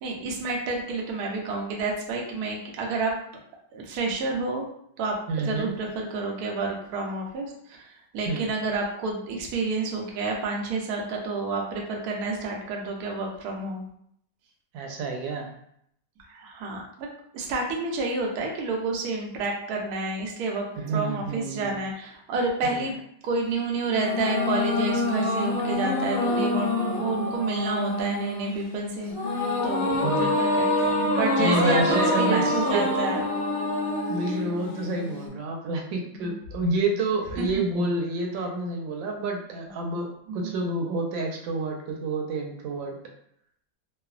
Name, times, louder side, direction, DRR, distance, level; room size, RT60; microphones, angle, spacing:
voice 1, 0.0-3.1 3.7-4.7 5.0-5.1 5.5-13.9 16.3-17.1 17.3-20.6 20.9-23.0 23.2-29.1 29.6-31.8 32.2-33.3 34.3-34.4 36.1-36.3 37.4-37.6 39.8-39.9 40.3-40.5, right 3 dB, 70° right, 0 dB, 1.0 m, -29 dB
voice 2, 5.3-5.7 8.3-8.5 14.7-15.5 20.8-21.8 22.6-22.8 29.9-30.4 31.4-32.8 34.1-42.9, right 2 dB, 90° right, 1 dB, 1.3 m, -29 dB
sound 1, 23.9-35.3, left 2 dB, 60° left, 1.1 m, -26 dB
3.0 x 2.0 x 2.3 m, 0.70 s
omnidirectional pair, 2.0 m